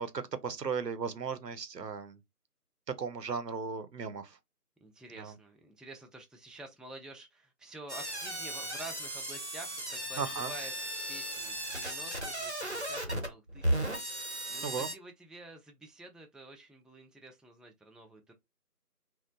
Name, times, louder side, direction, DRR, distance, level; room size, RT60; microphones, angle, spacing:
voice 1, 0.0-2.2 3.0-4.4 5.2-5.3 10.2-10.5 14.6-14.9, right 5 dB, 85° right, 0.7 m, -36 dB
voice 2, 4.8-10.7 11.1-18.3, right 2 dB, ahead, 0.4 m, -49 dB
sound 1, 7.9-14.9, right 1 dB, 45° right, 0.7 m, -36 dB
2.8 x 2.0 x 2.5 m
figure-of-eight pair, 175°, 48 cm